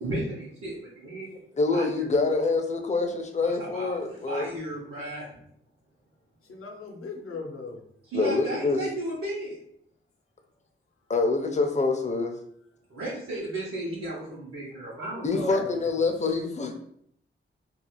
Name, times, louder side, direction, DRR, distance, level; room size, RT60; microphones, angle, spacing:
voice 1, 0.0-1.3 1.7-1.8 3.4-5.4 8.1-9.6 12.9-15.6, right 1 dB, 85° right, -7 dB, 0.7 m, -34 dB
voice 2, 1.3-4.5 8.1-8.8 11.1-12.4 15.2-16.7, left 3 dB, 35° left, 4 dB, 0.4 m, -26 dB
voice 3, 6.4-7.8 12.9-13.2 15.3-16.0, left 2 dB, 85° left, 2 dB, 0.6 m, -39 dB
2.4 x 2.3 x 2.9 m, 0.68 s
wide cardioid pair, 110°, 21 cm